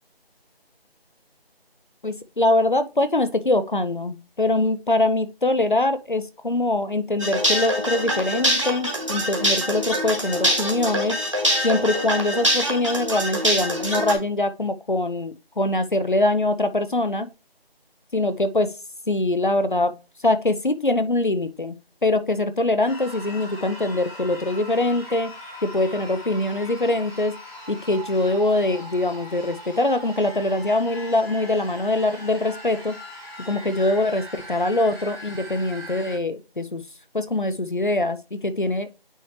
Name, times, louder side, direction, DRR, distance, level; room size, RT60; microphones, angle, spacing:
voice 1, 2.0-11.2 11.6-17.3 18.1-18.7 19.1-19.9 20.2-21.7 22.0-25.3 25.6-27.4 27.7-33.0 33.5-36.8 37.1-38.9, left 2 dB, 55° left, 11 dB, 0.6 m, -23 dB
sound 1, 7.2-14.1, equal, 30° right, 1.6 m, -24 dB
sound 2, 22.9-36.2, equal, 75° left, 3.7 m, -40 dB
9.0 x 3.2 x 4.1 m, 0.31 s
figure-of-eight pair, 180°, 31 cm